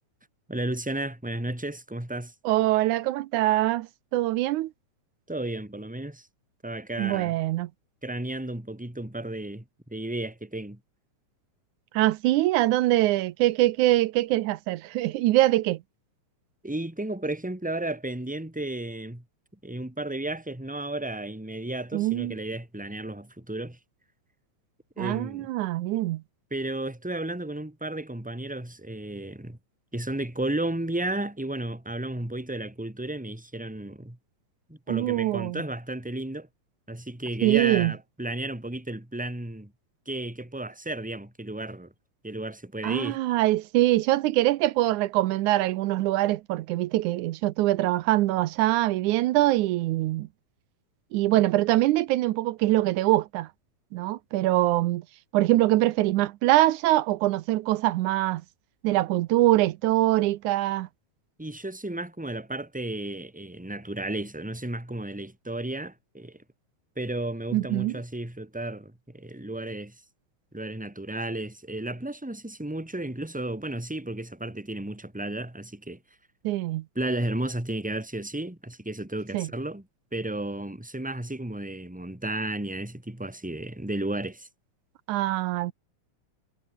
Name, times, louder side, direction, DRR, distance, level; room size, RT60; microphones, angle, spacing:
voice 1, 0.5-2.3 5.3-6.3 6.6-7.4 8.0-10.8 16.6-19.2 19.6-23.8 25.0-25.5 26.5-29.6 29.9-34.2 34.7-36.5 36.9-39.7 40.0-41.9 42.2-43.2 61.4-66.4 66.9-70.0 70.5-76.0 76.9-79.8 80.1-84.5, right 1 dB, 5° right, 3.0 m, -33 dB
voice 2, 2.5-4.7 7.0-7.7 11.9-15.8 21.9-22.4 25.0-26.2 34.9-35.6 37.4-37.9 42.8-50.3 51.1-53.5 53.9-55.1 55.3-58.4 58.8-60.9 67.5-68.0 76.4-76.8 79.3-79.5 85.1-85.7, right 16 dB, 85° right, 2.2 m, -23 dB
omnidirectional pair, 3.5 m